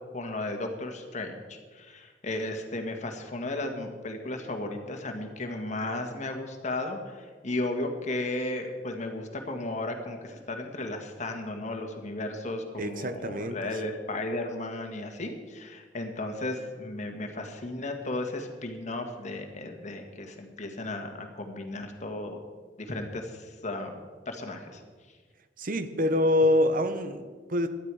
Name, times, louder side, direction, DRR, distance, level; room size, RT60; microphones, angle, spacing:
voice 1, 0.1-22.4 22.8-23.9 24.3-24.8, left 2 dB, 45° left, 4 dB, 1.7 m, -35 dB
voice 2, 12.8-13.5 25.6-27.7, left 1 dB, 50° right, 10 dB, 1.0 m, -25 dB
17.5 x 12.0 x 4.9 m, 1.5 s
head